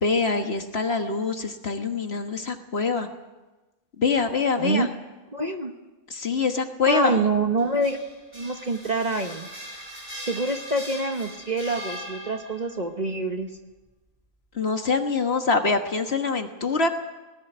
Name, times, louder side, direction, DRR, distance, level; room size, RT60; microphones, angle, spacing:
voice 1, 0.0-3.1 4.0-4.9 6.1-7.3 14.5-16.9, left 4 dB, 45° left, 6 dB, 1.6 m, -24 dB
voice 2, 4.6-4.9 5.3-5.7 6.9-8.0 8.3-9.5 10.2-13.5, right 2 dB, 30° right, 5 dB, 1.1 m, -26 dB
sound 1, 7.6-12.8, equal, 10° right, 4.6 m, -40 dB
19.0 x 14.5 x 9.3 m, 1.1 s
omnidirectional pair, 1.5 m